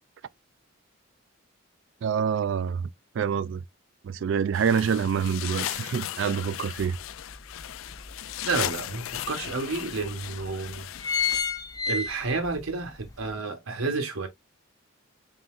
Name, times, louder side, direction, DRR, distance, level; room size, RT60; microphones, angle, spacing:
voice 1, 2.0-2.9 3.1-3.6 4.0-6.9, right 7 dB, 60° right, 0.3 m, -26 dB
sound 1, 4.5-11.4, left 12 dB, 80° left, 0.4 m, -36 dB
sound 2, 7.4-8.5 9.2-9.3 9.5-9.6 10.3-10.5 10.8-12.6 13.0-13.1, left 6 dB, 15° left, 0.8 m, -29 dB
voice 2, 8.4-10.8 11.9-14.3, right 3 dB, 85° right, 1.0 m, -30 dB
3.9 x 3.8 x 2.4 m
head